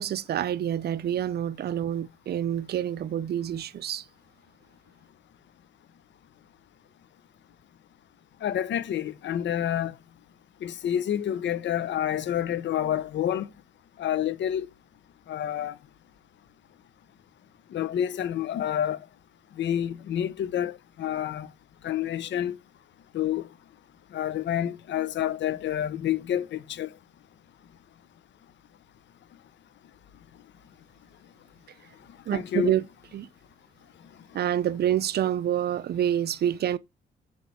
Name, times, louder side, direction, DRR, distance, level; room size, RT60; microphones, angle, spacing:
voice 1, 0.0-4.0 32.3-32.8 33.1-33.3 34.3-36.8, right 10 dB, 55° right, 0.5 m, -27 dB
voice 2, 8.4-9.9 10.6-13.5 14.0-14.7 15.3-15.7 17.7-19.0 19.6-21.5 21.8-22.5 23.1-23.5 24.1-26.9 32.3-32.7, left 10 dB, 65° left, 0.8 m, -28 dB
6.3 x 4.6 x 5.6 m
cardioid pair, 90°, 20 cm